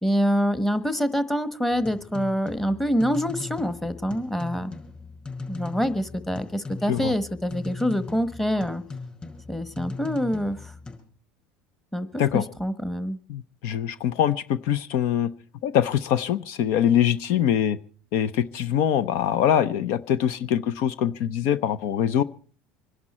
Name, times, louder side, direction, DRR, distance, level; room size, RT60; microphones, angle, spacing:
voice 1, 0.0-4.7 5.5-8.8 9.5-10.7 11.9-13.2, equal, 5° left, 12 dB, 1.3 m, -26 dB
sound 1, 1.7-11.0, left 4 dB, 25° left, 5.7 m, -39 dB
voice 2, 13.3-15.3 15.6-17.8 18.1-22.2, left 10 dB, 65° left, 15 dB, 0.8 m, -23 dB
25.5 x 11.0 x 4.3 m, 0.42 s
supercardioid pair, 110°, 5 cm